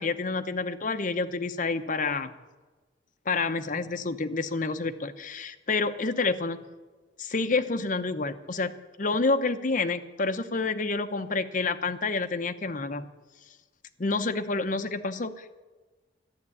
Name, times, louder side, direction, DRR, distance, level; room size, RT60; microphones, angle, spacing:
voice 1, 0.0-2.3 3.3-6.6 7.2-8.7 9.0-13.1 14.0-15.6, left 3 dB, 45° left, 8 dB, 0.8 m, -28 dB
12.0 x 9.8 x 8.4 m, 1.3 s
head